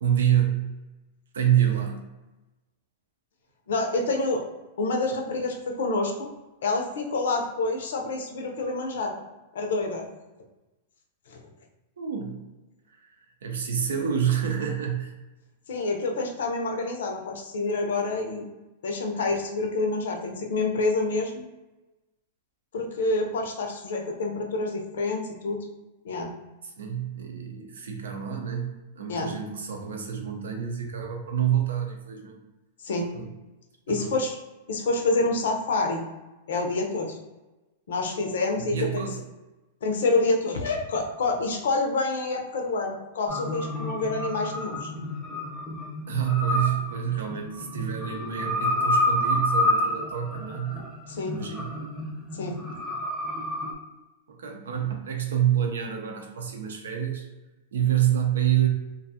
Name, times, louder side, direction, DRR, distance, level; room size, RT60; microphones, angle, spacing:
voice 1, 0.0-0.7 1.3-2.1 12.0-12.4 13.0-13.2 13.4-15.1 26.6-32.5 33.1-33.3 33.9-34.2 38.6-39.2 46.1-50.8 51.3-51.8 54.4-57.2 57.7-58.7, right 9 dB, 85° right, 3 dB, 0.5 m, -27 dB
voice 2, 3.7-4.5 4.8-6.3 6.6-9.2 9.5-10.1 11.3-11.4 15.7-18.5 18.8-21.5 22.7-25.6 26.0-26.3 29.1-29.3 32.8-33.1 33.9-34.4 34.7-36.0 36.5-37.2 37.9-39.0 39.8-44.9 51.1-51.4 52.3-52.6, left 3 dB, 80° left, 2 dB, 0.6 m, -27 dB
sound 1, 43.3-53.7, left 1 dB, ahead, 0.7 m, -29 dB
2.5 x 2.3 x 2.6 m, 1.1 s
hypercardioid pair, 130°, 0 cm